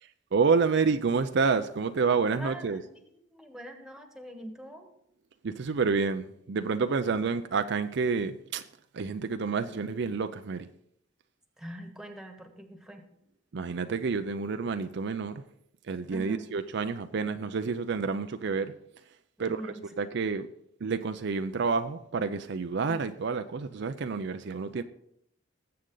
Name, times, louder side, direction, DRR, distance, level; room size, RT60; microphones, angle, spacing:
voice 1, 0.3-2.8 5.4-8.6 8.9-10.7 13.5-15.4 15.9-18.7 19.4-19.6 20.0-20.5 20.8-24.8, right 5 dB, 60° right, 0.5 m, -29 dB
voice 2, 2.4-3.0 3.3-4.9 11.6-13.1 16.1-16.5 19.4-20.1, right 1 dB, 5° right, 1.4 m, -43 dB
19.0 x 7.7 x 3.9 m
head